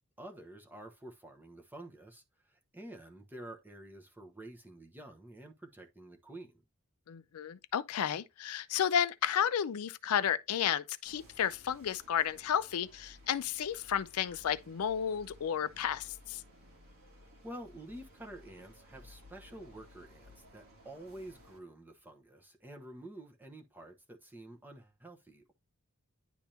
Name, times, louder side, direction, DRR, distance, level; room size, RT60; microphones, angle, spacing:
voice 1, 0.2-6.6 17.4-25.5, right 1 dB, 10° right, 1.0 m, -49 dB
voice 2, 7.1-16.4, left 9 dB, 80° left, 0.4 m, -32 dB
sound 1, 11.1-21.6, left 1 dB, 65° right, 2.1 m, -58 dB
10.0 x 3.5 x 2.9 m
head